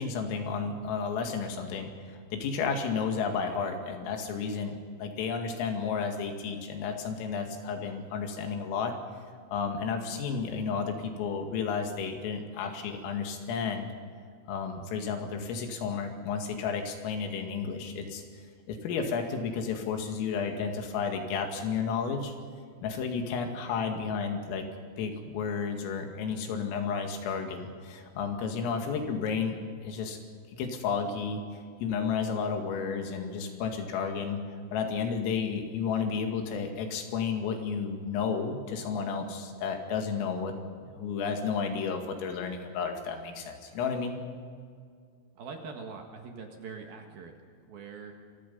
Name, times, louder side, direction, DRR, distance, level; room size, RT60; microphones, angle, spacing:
voice 1, 0.0-9.0 9.5-13.9 14.5-18.2 18.7-22.3 22.8-24.7 25.0-29.6 29.8-30.2 30.5-31.4 31.8-34.4 34.7-40.5 40.8-44.1, left 5 dB, 85° left, 4 dB, 4.8 m, -32 dB
voice 2, 45.4-47.3 47.7-48.2, right 5 dB, 60° right, 3 dB, 3.0 m, -43 dB
27.5 x 23.0 x 5.5 m, 2.1 s
omnidirectional pair, 5.8 m